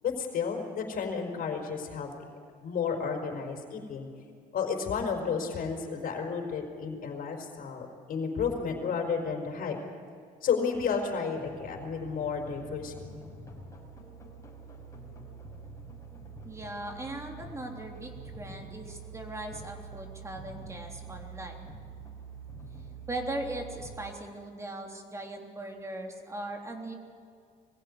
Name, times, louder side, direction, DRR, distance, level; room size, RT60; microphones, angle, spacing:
voice 1, 0.0-2.1 2.6-4.1 4.5-9.8 10.4-13.0, left 6 dB, 60° left, 3 dB, 4.8 m, -32 dB
sound 1, 11.4-24.0, right 4 dB, 20° left, 5.9 m, -46 dB
voice 2, 16.4-21.7 23.1-26.9, right 1 dB, 15° right, 2 dB, 3.4 m, -39 dB
22.5 x 16.0 x 9.8 m, 2.2 s
cardioid pair, 110°, 17 cm